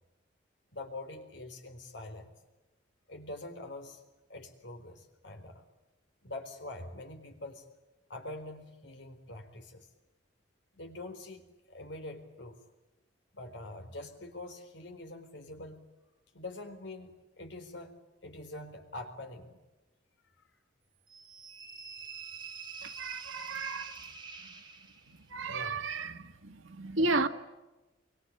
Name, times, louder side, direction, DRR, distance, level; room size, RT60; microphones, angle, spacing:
voice 1, 0.7-2.3 3.1-4.0 4.3-5.6 6.2-7.6 8.1-9.9 10.7-12.6 13.3-15.8 16.3-17.9 18.2-19.6 20.4-20.5 23.5-23.9 25.5-25.9 27.0-27.1, left 2 dB, 65° left, 4.3 m, -45 dB
sound 1, 21.1-25.2, right 5 dB, 25° right, 4.0 m, -46 dB
voice 2, 23.0-23.9 25.3-27.3, right 3 dB, 90° right, 2.0 m, -33 dB
27.0 x 25.0 x 8.7 m
head